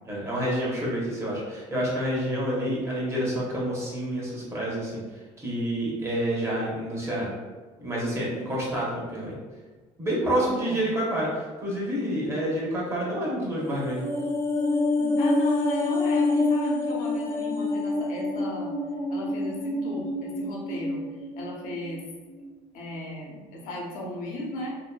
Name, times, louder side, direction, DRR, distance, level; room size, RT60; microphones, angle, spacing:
voice 1, 0.0-5.0 5.4-7.3 7.8-9.4 10.0-14.0, equal, 20° right, -5 dB, 0.9 m, -28 dB
voice 2, 10.2-10.8 15.0-18.7 19.1-21.0 21.4-22.0 22.7-24.8, left 1 dB, 75° left, -2 dB, 0.8 m, -36 dB
sound 1, 13.6-22.0 22.3-22.5, left 2 dB, 15° left, 0.4 m, -27 dB
2.8 x 2.5 x 2.3 m, 1.3 s
cardioid pair, 130°, 14 cm